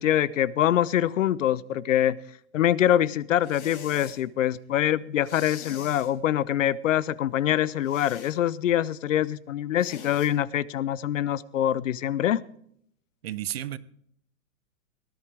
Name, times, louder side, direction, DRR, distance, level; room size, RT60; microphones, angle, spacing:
voice 1, 0.0-2.2 2.5-12.4, left 11 dB, 65° left, 21 dB, 0.7 m, -24 dB
sound 1, 3.4-4.2 5.2-6.1 7.8-8.4 9.8-10.3, left 7 dB, 85° left, 4.0 m, -44 dB
voice 2, 13.2-13.8, right 12 dB, 45° right, 19 dB, 0.6 m, -32 dB
18.5 x 13.0 x 3.5 m, 0.66 s
hypercardioid pair, 175°, 41 cm